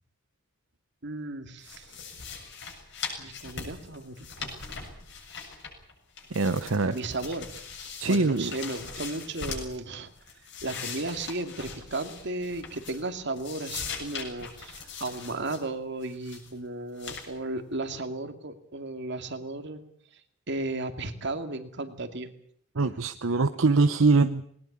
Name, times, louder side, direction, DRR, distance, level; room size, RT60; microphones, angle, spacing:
voice 1, 1.0-2.0 3.2-4.6 6.8-7.5 8.1-10.1 10.6-19.8 20.5-22.3, right 2 dB, 60° right, 8 dB, 2.5 m, -35 dB
sound 1, 1.6-5.9 6.2-9.8 10.2-13.1 13.4-15.6 16.0-16.5 17.0-17.3, left 5 dB, 65° left, 7.2 m, -40 dB
voice 2, 6.3-7.0 8.0-8.5 22.8-24.5, right 3 dB, 80° right, 11 dB, 0.8 m, -23 dB
20.0 x 19.5 x 8.6 m, 0.65 s
head